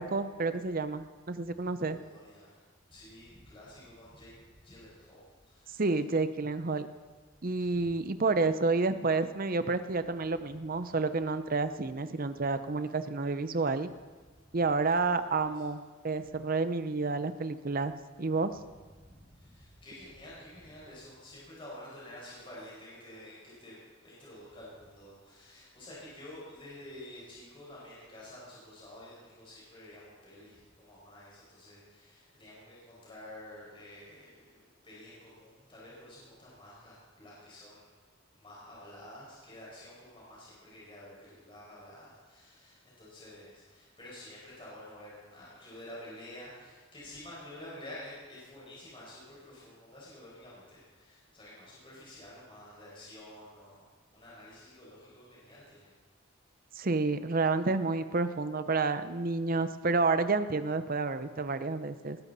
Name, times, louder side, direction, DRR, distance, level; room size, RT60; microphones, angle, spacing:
voice 1, 0.0-2.0 5.8-6.9 7.4-13.9 14.5-17.9 18.2-18.6 56.7-62.2, right 3 dB, 45° right, 11 dB, 0.7 m, -30 dB
voice 2, 1.8-5.8 7.6-7.8 15.0-15.6 19.0-37.8 38.4-55.9, left 1 dB, 25° left, -7 dB, 5.8 m, -50 dB
20.0 x 14.0 x 4.2 m, 1.4 s
head